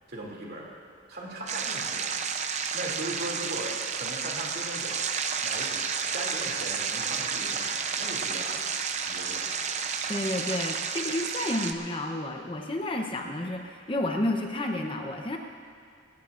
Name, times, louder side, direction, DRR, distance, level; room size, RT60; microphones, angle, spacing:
voice 1, 0.1-0.7 1.1-2.2 2.7-5.1 5.4-8.7 9.1-9.5, right 1 dB, 50° right, -2 dB, 2.7 m, -38 dB
sound 1, 1.5-11.7, right 6 dB, 35° right, 0.6 m, -31 dB
voice 2, 10.1-15.4, left 1 dB, 25° left, 3 dB, 0.8 m, -30 dB
20.0 x 17.5 x 2.5 m, 2.4 s
head